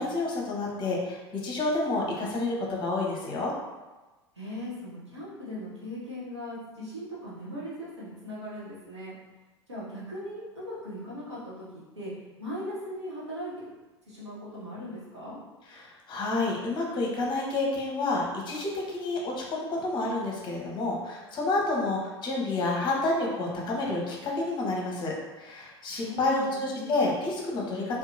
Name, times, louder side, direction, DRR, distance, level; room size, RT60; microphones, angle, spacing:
voice 1, 0.0-3.5 15.7-28.0, left 2 dB, 30° left, -2 dB, 0.7 m, -29 dB
voice 2, 4.4-9.1 9.7-12.1 12.4-13.5 14.1-15.4 26.0-27.1, equal, 85° right, -9 dB, 1.0 m, -39 dB
2.7 x 2.3 x 2.6 m, 1.2 s
figure-of-eight pair, 80°, 14 cm